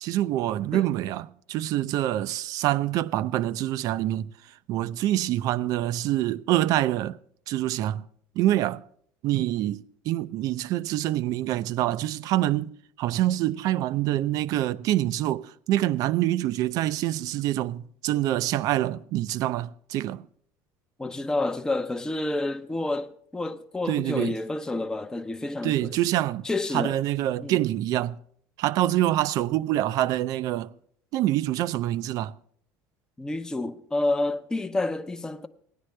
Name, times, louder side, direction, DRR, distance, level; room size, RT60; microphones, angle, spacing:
voice 1, 0.0-4.3 4.7-7.2 7.5-8.1 8.4-8.8 9.2-20.3 23.9-24.4 25.6-26.4 26.7-28.2 28.6-30.7 31.1-32.3, right 14 dB, 60° right, 0.4 m, -26 dB
voice 2, 21.0-26.0 26.4-27.0 27.4-27.6 33.2-35.5, left 2 dB, 10° left, 0.6 m, -29 dB
16.0 x 10.0 x 3.2 m
supercardioid pair, 115°, 7 cm